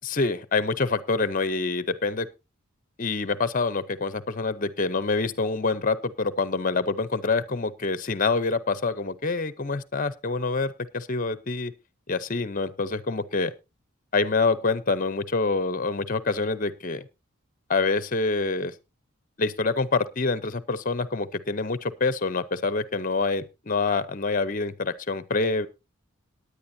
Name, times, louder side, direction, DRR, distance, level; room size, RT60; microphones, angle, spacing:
voice 1, 0.0-2.3 3.0-11.7 12.1-13.5 14.1-17.0 17.7-18.7 19.4-25.7, left 3 dB, 40° left, 15 dB, 0.7 m, -26 dB
18.5 x 9.8 x 2.7 m, 0.26 s
head